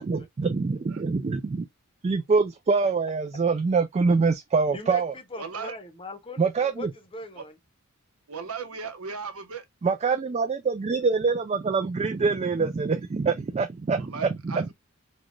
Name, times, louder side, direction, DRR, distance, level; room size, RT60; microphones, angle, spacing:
voice 1, 0.0-1.7 2.0-5.1 6.4-6.9 9.8-14.7, right 4 dB, 30° right, 0.3 m, -25 dB
voice 2, 4.7-7.6, left 2 dB, 25° left, 0.7 m, -40 dB
voice 3, 5.4-5.8 7.4-7.5 8.3-9.6 14.1-14.7, right 5 dB, 80° right, 0.8 m, -36 dB
4.1 x 2.2 x 3.0 m
head